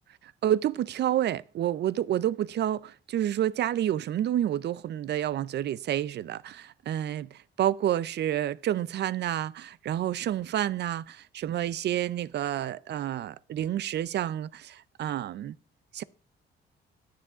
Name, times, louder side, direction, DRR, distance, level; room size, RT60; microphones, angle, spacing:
voice 1, 0.2-15.6 15.9-16.0, right 11 dB, 60° right, 0.5 m, -29 dB
9.3 x 7.6 x 4.9 m
cardioid pair, 90°, 20 cm